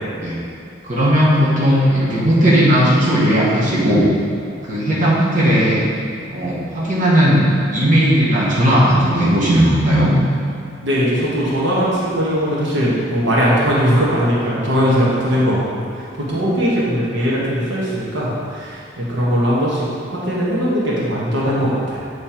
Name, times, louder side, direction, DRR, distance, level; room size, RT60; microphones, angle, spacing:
voice 1, 0.8-4.1 4.6-5.8 6.3-7.4 7.7-10.1, equal, 45° right, -8 dB, 1.3 m, -16 dB
voice 2, 10.8-19.8 20.1-22.0, equal, 80° right, -6 dB, 1.2 m, -19 dB
7.3 x 3.3 x 4.4 m, 2.4 s
head